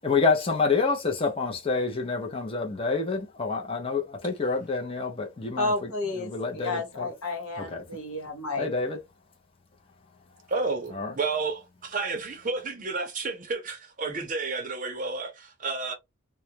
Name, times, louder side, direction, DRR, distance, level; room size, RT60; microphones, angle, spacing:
voice 1, 0.0-7.1 7.6-7.8 8.6-9.0 10.9-11.1, left 4 dB, 25° left, 0.5 m, -28 dB
voice 2, 5.6-8.7, left 2 dB, 85° left, 1.0 m, -31 dB
voice 3, 10.5-15.9, right 3 dB, 35° right, 0.6 m, -31 dB
2.3 x 2.1 x 2.7 m
head